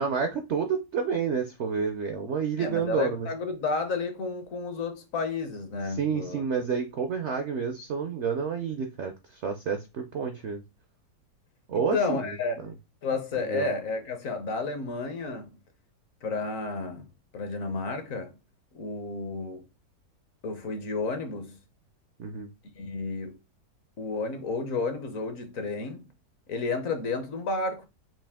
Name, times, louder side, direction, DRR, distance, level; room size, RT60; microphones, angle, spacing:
voice 1, 0.0-3.3 5.9-10.6 11.7-12.2 12.6-12.7 13.4-13.7 22.2-22.5, right 6 dB, 70° right, 0.6 m, -29 dB
voice 2, 2.6-6.4 11.7-12.6 13.0-15.5 16.2-17.0 17.3-18.3 18.7-19.6 20.4-21.6 22.7-23.4 24.0-26.0 26.5-27.9, left 3 dB, 60° left, 1.1 m, -31 dB
5.9 x 2.5 x 3.5 m
omnidirectional pair, 1.8 m